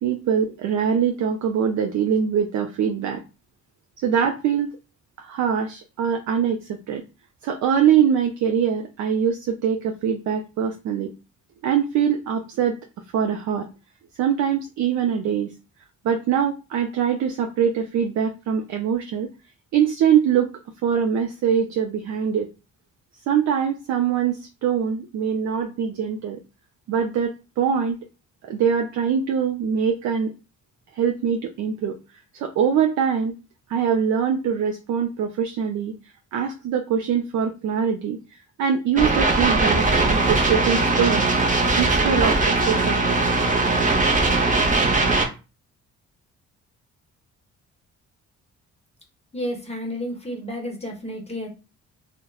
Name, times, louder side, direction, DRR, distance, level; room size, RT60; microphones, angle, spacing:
voice 1, 0.0-3.2 4.0-4.7 5.2-7.0 7.4-11.1 11.6-12.8 13.1-13.7 14.2-15.5 16.0-19.3 19.7-20.5 20.8-22.5 23.3-26.4 26.9-28.0 28.5-30.3 30.9-32.0 32.3-33.4 33.7-35.9 36.3-38.2 38.6-41.3 41.8-43.0, right 8 dB, 70° right, 4 dB, 0.4 m, -23 dB
sound 1, 39.0-45.3, right 3 dB, 25° right, 0.6 m, -20 dB
voice 2, 49.3-51.5, equal, 20° left, 1 dB, 0.7 m, -31 dB
2.8 x 2.1 x 2.2 m, 0.30 s
cardioid pair, 90°, 30 cm